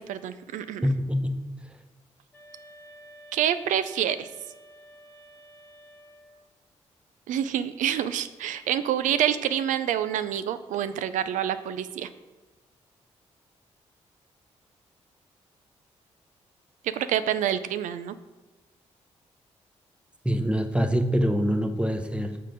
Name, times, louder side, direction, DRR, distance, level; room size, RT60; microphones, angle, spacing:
voice 1, 0.0-0.9 3.3-4.3 7.3-12.1 16.8-18.1, right 10 dB, 80° right, 12 dB, 0.4 m, -27 dB
voice 2, 0.8-1.4 20.2-22.4, equal, 10° right, 7 dB, 0.8 m, -25 dB
sound 1, 2.3-6.5, equal, 15° left, 2.1 m, -50 dB
7.4 x 3.8 x 5.1 m, 1.1 s
supercardioid pair, 50°, 13 cm